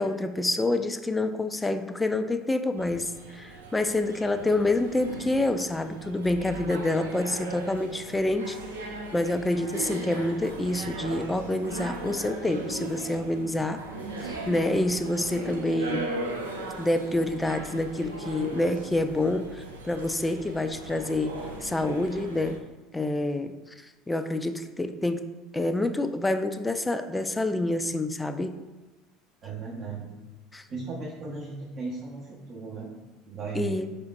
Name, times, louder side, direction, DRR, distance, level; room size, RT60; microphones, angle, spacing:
voice 1, 0.0-8.6 8.9-13.8 14.2-16.1 16.8-21.4 21.6-22.6 22.9-25.2 25.5-28.6 30.5-30.6 33.5-33.9, left 2 dB, 10° left, 9 dB, 0.3 m, -27 dB
sound 1, 2.8-22.6, right 2 dB, 80° right, 0.5 m, -38 dB
voice 2, 29.4-30.2 30.7-32.9 33.3-33.8, right 4 dB, 40° right, -5 dB, 0.8 m, -36 dB
5.0 x 3.4 x 2.3 m, 1.1 s
figure-of-eight pair, 70°, 0 cm